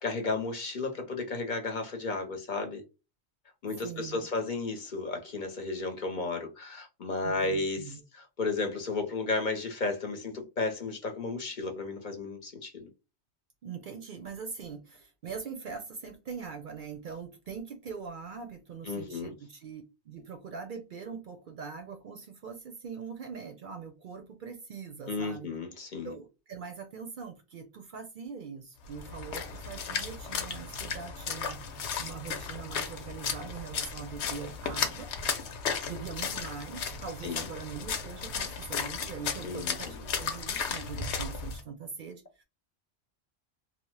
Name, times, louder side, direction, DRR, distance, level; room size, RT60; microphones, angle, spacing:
voice 1, 0.0-2.8 3.6-7.8 8.1-12.9 18.9-19.3 25.1-26.1 37.2-37.4 39.4-40.0, left 3 dB, 50° left, 0.8 m, -33 dB
voice 2, 3.8-4.3 7.2-8.0 13.6-25.5 26.0-35.1 35.8-42.4, right 6 dB, 60° right, 0.6 m, -42 dB
Splash splatter, 28.9-41.6, left 6 dB, 80° left, 0.9 m, -35 dB
2.7 x 2.1 x 3.1 m
omnidirectional pair, 1.1 m